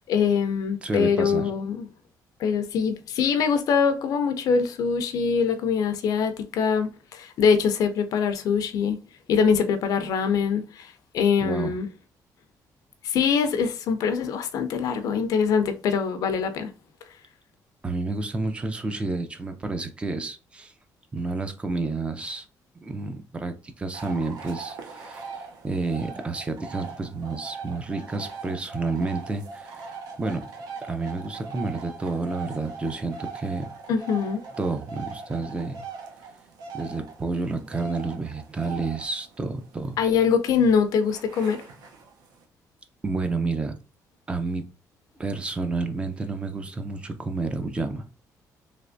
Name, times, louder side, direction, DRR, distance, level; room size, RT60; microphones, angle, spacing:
voice 1, 0.1-1.9 2.4-9.0 9.3-11.9 13.0-16.7 33.9-34.4 40.0-41.6, left 6 dB, 65° left, 0.5 m, -23 dB
voice 2, 0.8-1.5 11.4-11.7 17.8-20.7 21.1-22.5 22.8-29.9 30.2-30.5 30.9-33.7 34.6-35.8 36.7-40.0 43.0-43.8 44.3-44.6 45.2-48.1, right 3 dB, 15° right, 0.4 m, -30 dB
sound 1, 23.9-42.4, right 4 dB, 80° right, 0.7 m, -41 dB
3.2 x 3.0 x 2.5 m
cardioid pair, 175°, 7 cm